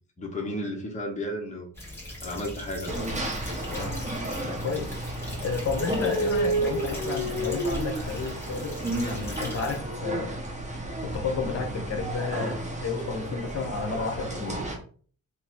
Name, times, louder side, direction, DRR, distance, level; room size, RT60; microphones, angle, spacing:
voice 1, 0.2-1.7 2.2-3.2, left 1 dB, 25° left, 1 dB, 1.0 m, -33 dB
sound 1, 1.7-9.8, left 1 dB, 10° left, 1.7 m, -40 dB
sound 2, 2.9-14.8, right 1 dB, 20° right, 1.1 m, -31 dB
voice 2, 3.6-4.0 4.4-5.0 5.4-10.4 11.0-14.6, left 4 dB, 50° left, 5 dB, 1.0 m, -32 dB
3.1 x 3.0 x 4.5 m, 0.43 s
wide cardioid pair, 145°, 31 cm